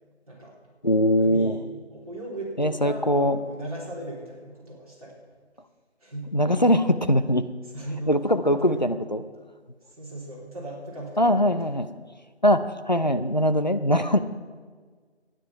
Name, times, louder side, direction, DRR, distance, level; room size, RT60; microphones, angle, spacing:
voice 1, 0.3-0.6 1.2-5.2 6.0-6.4 7.7-8.2 8.4-9.0 10.0-11.5, right 1 dB, 35° right, -5 dB, 3.3 m, -37 dB
voice 2, 0.8-1.5 2.6-3.4 6.3-7.5 8.1-9.2 11.2-11.9 12.4-14.2, equal, 40° left, 10 dB, 0.6 m, -21 dB
12.5 x 10.0 x 5.8 m, 1.5 s
figure-of-eight pair, 170°, 34 cm